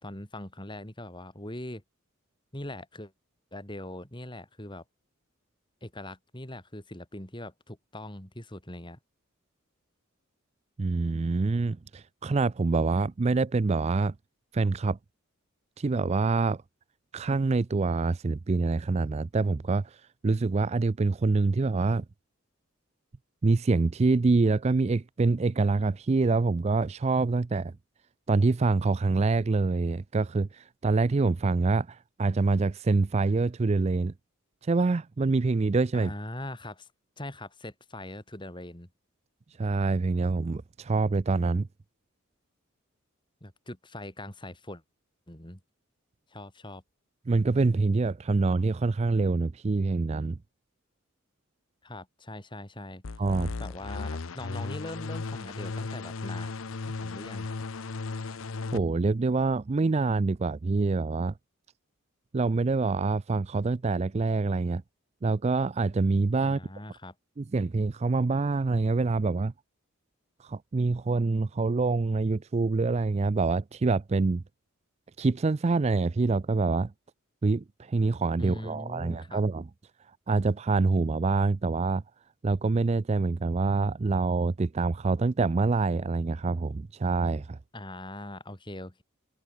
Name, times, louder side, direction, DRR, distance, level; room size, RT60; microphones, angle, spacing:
voice 1, 0.0-1.8 2.5-3.1 3.5-4.8 5.8-9.0 35.9-36.9 37.2-38.9 43.4-44.8 45.3-45.6 46.3-46.8 51.8-53.0 53.6-56.5 57.0-57.6 66.4-67.1 78.4-79.4 87.7-89.0, left 1 dB, 25° left, 4.6 m, -41 dB
voice 2, 10.8-14.1 14.5-15.0 15.8-16.6 17.1-22.0 23.4-27.7 28.3-34.1 34.6-36.1 39.6-41.7 47.3-50.4 53.2-53.5 58.7-61.3 62.3-64.8 65.2-66.6 67.4-69.5 70.4-74.4 75.2-76.9 77.4-79.7 80.3-82.0 82.4-87.6, right 3 dB, 30° right, 0.4 m, -26 dB
sound 1, 53.0-58.8, left 4 dB, 75° left, 0.7 m, -36 dB
head